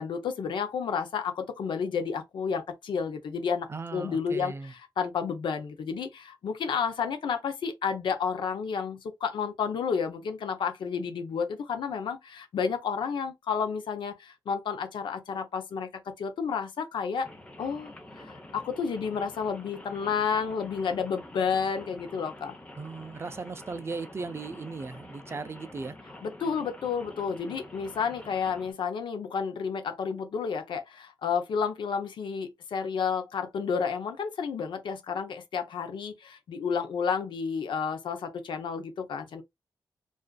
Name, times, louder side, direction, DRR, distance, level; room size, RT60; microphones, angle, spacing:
voice 1, 0.0-17.3 17.6-22.5 26.2-39.4, left 6 dB, 80° left, 0.5 m, -31 dB
voice 2, 3.7-4.7 22.8-26.0, right 4 dB, 30° right, 0.3 m, -37 dB
Rain, 17.2-28.7, left 1 dB, 15° left, 0.6 m, -47 dB
2.4 x 2.3 x 2.2 m
cardioid pair, 85°, 8 cm